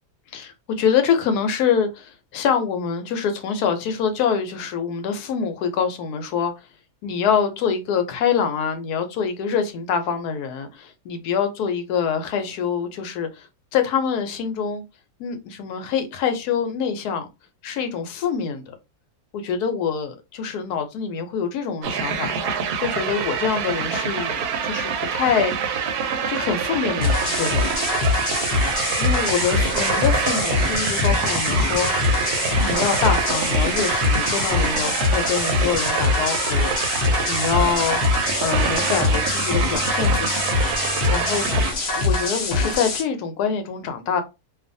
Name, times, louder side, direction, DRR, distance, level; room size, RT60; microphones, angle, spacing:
voice 1, 0.3-6.5 7.0-13.5 13.7-14.8 15.2-17.3 17.6-18.7 19.3-22.3 22.8-25.5 26.3-27.7 29.0-31.9 32.6-37.0 37.3-38.0 38.4-40.5 41.1-41.5 42.0-44.2, left 7 dB, 80° left, 1.1 m, -25 dB
White noise with flanger, 21.8-41.7, right 6 dB, 80° right, 1.1 m, -26 dB
sound 1, 27.0-43.0, left 3 dB, 55° left, 0.6 m, -23 dB
sound 2, 28.5-34.8, right 4 dB, 65° right, 0.8 m, -33 dB
2.5 x 2.4 x 2.5 m
omnidirectional pair, 1.7 m